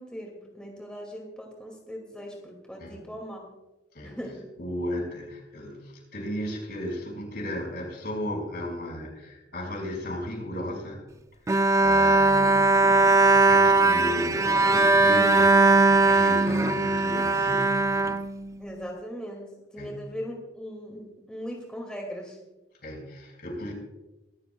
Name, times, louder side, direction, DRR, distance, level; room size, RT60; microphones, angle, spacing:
voice 1, 0.0-3.4 4.0-4.5 18.6-22.4, equal, 5° left, -1 dB, 2.3 m, -39 dB
voice 2, 4.6-11.0 11.8-15.5 15.9-17.8 19.8-20.1 22.8-23.7, left 1 dB, 60° left, 1 dB, 5.2 m, -35 dB
Bowed string instrument, 11.5-18.8, right 3 dB, 20° right, 0.4 m, -20 dB
24.0 x 13.5 x 2.3 m, 1.0 s
head